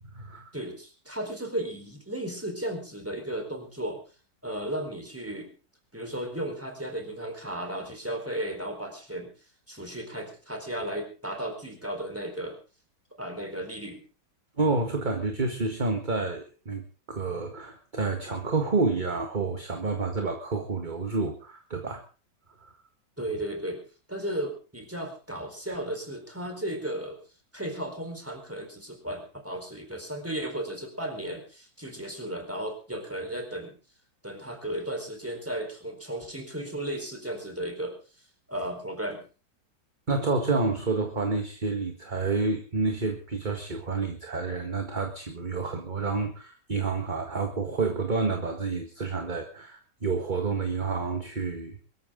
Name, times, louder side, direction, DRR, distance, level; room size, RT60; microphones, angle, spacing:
voice 1, 0.0-0.5 14.6-16.8 17.1-22.0 40.1-51.8, right 3 dB, 25° right, 4 dB, 1.8 m, -29 dB
voice 2, 0.5-4.0 4.4-5.5 5.9-9.3 9.7-12.6 13.2-14.0 23.2-23.8 24.1-27.2 27.5-33.7 34.2-38.0 38.5-39.2, right 1 dB, 5° right, 4 dB, 4.3 m, -35 dB
23.0 x 13.5 x 3.8 m, 0.35 s
omnidirectional pair, 1.9 m